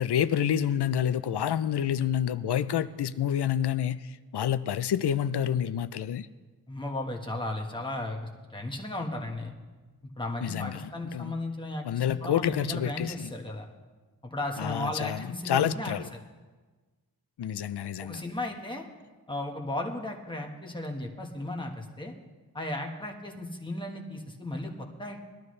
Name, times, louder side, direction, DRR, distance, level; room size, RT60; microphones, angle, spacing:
voice 1, 0.0-4.0 4.3-6.3 10.4-11.3 11.9-13.3 14.6-16.0 17.4-18.2, left 9 dB, 90° left, 0.5 m, -28 dB
voice 2, 6.7-9.5 10.2-13.7 14.2-16.2 18.0-18.8 19.3-22.1 22.5-25.2, left 1 dB, 10° left, 1.4 m, -35 dB
20.0 x 12.0 x 3.2 m
wide cardioid pair, 115°, 39 cm